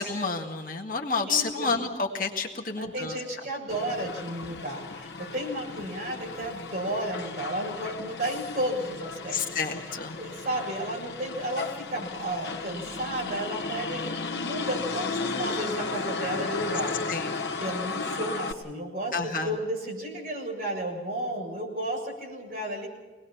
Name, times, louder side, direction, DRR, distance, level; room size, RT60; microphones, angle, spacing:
voice 1, 0.0-3.2 9.3-10.2 17.1-17.5 19.1-19.5, left 4 dB, 50° left, 2 dB, 1.9 m, -30 dB
voice 2, 1.3-1.8 2.7-9.6 10.2-17.2 17.6-22.9, right 1 dB, 50° right, -1 dB, 7.1 m, -33 dB
Motor vehicle (road), 3.7-18.5, left 4 dB, 70° left, 1.5 m, -35 dB
25.0 x 20.0 x 5.8 m, 1.2 s
head